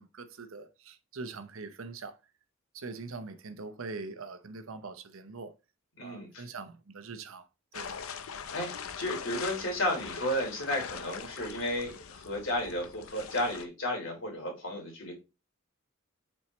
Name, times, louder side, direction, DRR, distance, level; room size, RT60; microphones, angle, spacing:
voice 1, 0.0-2.2 2.7-5.5 6.0-7.5 7.7-8.0, right 4 dB, 70° right, 0.8 m, -43 dB
voice 2, 6.0-6.4 8.5-15.1, left 1 dB, 60° left, 3.1 m, -33 dB
sound 1, 7.7-13.7, left 6 dB, 75° left, 0.7 m, -42 dB
7.4 x 4.4 x 3.2 m
head